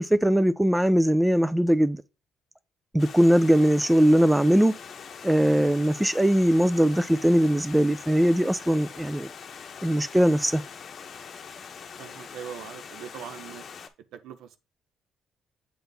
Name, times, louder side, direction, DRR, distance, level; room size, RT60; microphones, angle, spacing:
voice 1, 0.0-2.0 2.9-4.7 5.2-9.3 9.8-10.6, equal, 5° right, 0.4 m, -21 dB
Stream, 3.0-13.9, left 6 dB, 40° left, 0.8 m, -43 dB
voice 2, 12.0-13.6 14.1-14.6, right 9 dB, 85° right, 0.7 m, -41 dB
7.9 x 4.1 x 3.4 m
cardioid pair, 135°, 0 cm